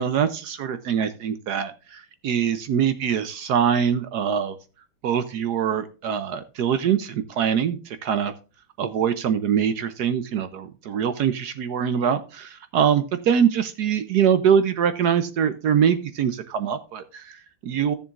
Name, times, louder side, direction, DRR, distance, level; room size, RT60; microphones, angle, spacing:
voice 1, 0.0-4.6 5.0-8.3 8.8-17.9, right 8 dB, 65° right, 11 dB, 1.1 m, -23 dB
15.0 x 6.9 x 2.4 m, 0.33 s
omnidirectional pair, 2.2 m